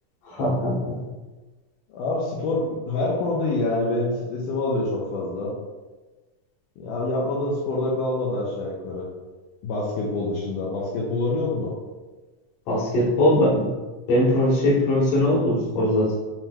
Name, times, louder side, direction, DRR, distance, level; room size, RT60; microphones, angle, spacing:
voice 1, 0.3-1.0 12.7-13.7 14.1-16.2, left 1 dB, 60° left, -5 dB, 1.9 m, -21 dB
voice 2, 1.9-5.5 6.8-9.1 9.6-11.7, left 2 dB, 80° left, -5 dB, 2.1 m, -26 dB
7.4 x 2.9 x 2.2 m, 1.2 s
omnidirectional pair, 3.8 m